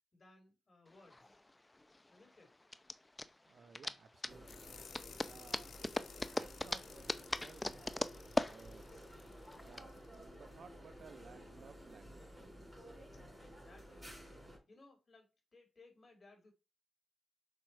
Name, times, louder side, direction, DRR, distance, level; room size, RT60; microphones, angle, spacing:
voice 1, 0.1-1.4 2.1-2.6 13.4-14.2 14.7-16.5, left 3 dB, 45° left, 4.2 m, -63 dB
sound 1, 0.9-9.8, left 2 dB, 20° left, 0.7 m, -40 dB
voice 2, 3.5-5.7 6.3-7.9 8.4-8.9 9.5-12.5, right 5 dB, 70° right, 1.0 m, -59 dB
sound 2, 4.3-14.6, equal, 5° right, 5.4 m, -54 dB
sound 3, 4.4-10.2, left 7 dB, 80° left, 0.7 m, -58 dB
7.0 x 6.2 x 4.6 m
cardioid pair, 80°, 0 cm